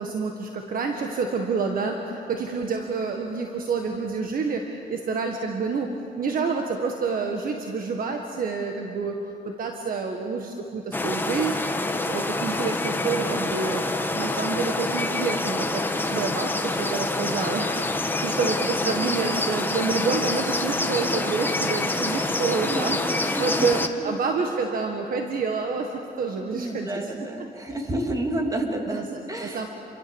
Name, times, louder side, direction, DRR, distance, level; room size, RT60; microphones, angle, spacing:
voice 1, 0.0-9.2 9.6-13.8 14.1-15.8 16.1-27.1 28.8-29.7, right 4 dB, 55° right, 3 dB, 1.7 m, -28 dB
sound 1, 10.9-23.9, left 2 dB, 10° left, 1.3 m, -26 dB
voice 2, 22.7-23.7 24.0-24.2 26.5-29.0 29.3-29.7, right 1 dB, 20° right, 2 dB, 3.1 m, -30 dB
28.0 x 23.5 x 7.2 m, 2.8 s
cardioid pair, 125°, 17 cm